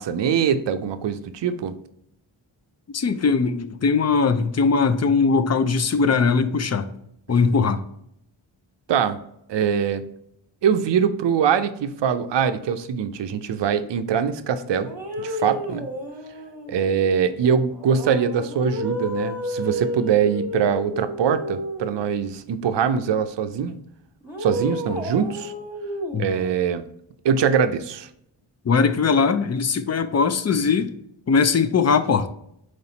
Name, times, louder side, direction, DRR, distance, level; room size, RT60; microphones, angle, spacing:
voice 1, 0.0-1.7 8.9-9.2 9.5-10.0 10.6-14.9 15.2-15.9 16.7-23.8 24.4-25.5 26.2-26.8 27.2-28.1, right 7 dB, 60° right, 10 dB, 0.6 m, -23 dB
voice 2, 2.9-6.9 7.3-7.8 26.1-26.3 28.6-30.9 31.3-32.3, left 5 dB, 35° left, 11 dB, 0.5 m, -20 dB
sound 1, 14.8-16.9 17.7-22.0 24.2-26.5, equal, 5° right, 1.4 m, -31 dB
4.2 x 3.1 x 4.0 m, 0.74 s
cardioid pair, 45°, 49 cm